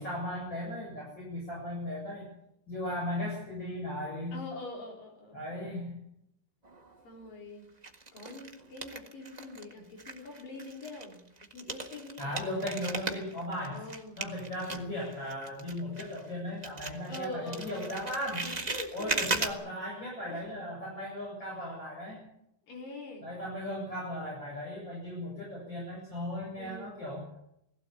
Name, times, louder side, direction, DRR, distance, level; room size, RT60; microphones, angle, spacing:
voice 1, 0.0-2.3 2.7-4.4 5.3-5.9 12.2-13.8 14.2-18.5 18.9-22.2 23.2-27.2, left 1 dB, 30° left, -4 dB, 8.2 m, -37 dB
voice 2, 4.3-5.4 7.0-7.7 8.1-12.4 13.7-14.3 17.1-18.0 18.4-19.2 20.3-20.4 22.7-23.3 26.6-27.0, left 2 dB, 85° left, 0 dB, 5.9 m, -44 dB
sound 1, 6.6-7.3 7.8-9.7 10.0-16.4 16.6-19.5, right 3 dB, 35° right, 0.6 m, -37 dB
19.5 x 16.5 x 8.4 m, 0.77 s
omnidirectional pair, 3.8 m